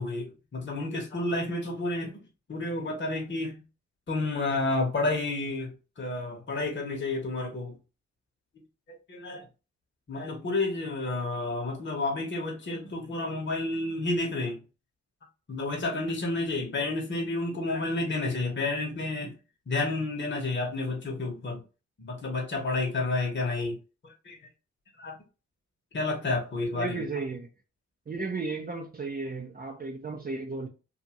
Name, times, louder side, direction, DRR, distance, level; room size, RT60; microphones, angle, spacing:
voice 1, 0.0-2.2 2.5-3.6 4.1-7.7 8.9-9.4 10.1-14.6 15.5-19.3 19.7-21.6 22.0-23.8 24.0-24.4 25.0-25.2 25.9-27.1, left 2 dB, 40° left, 1.0 m, -30 dB
voice 2, 26.7-27.5 28.1-30.7, right 3 dB, 30° right, 0.6 m, -34 dB
2.6 x 2.4 x 2.9 m
supercardioid pair, 40°, 30 cm